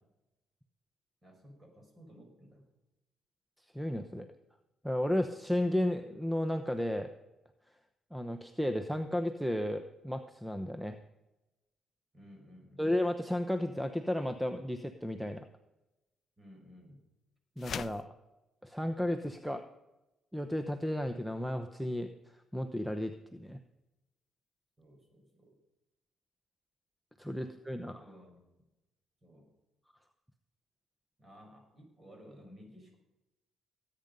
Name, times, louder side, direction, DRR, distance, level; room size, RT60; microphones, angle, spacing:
voice 1, 1.2-2.7 12.1-13.0 16.4-17.0 24.8-25.6 27.4-27.5 27.8-28.4 29.2-29.5 31.2-33.0, equal, 30° right, 3 dB, 5.2 m, -55 dB
voice 2, 3.7-4.3 4.8-7.1 8.1-11.0 12.8-15.5 17.6-18.1 18.6-19.6 20.3-22.1 22.5-23.6 27.2-28.0, left 1 dB, 5° right, 8 dB, 0.9 m, -33 dB
sound 1, 17.6-18.1, left 7 dB, 55° left, 0.4 m, -39 dB
19.0 x 9.0 x 5.4 m, 0.97 s
cardioid pair, 90°, 0 cm